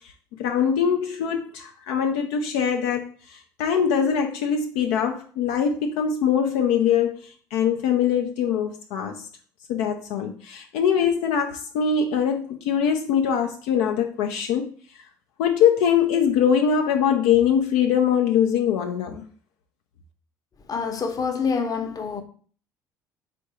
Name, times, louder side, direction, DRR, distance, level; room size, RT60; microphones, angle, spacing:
voice 1, 0.4-7.2 7.5-9.2 9.7-14.7 15.4-19.2, left 8 dB, 75° left, 0.4 m, -22 dB
voice 2, 20.7-22.2, left 5 dB, 40° left, 0.8 m, -26 dB
3.6 x 2.6 x 4.2 m
hypercardioid pair, 65°, 10 cm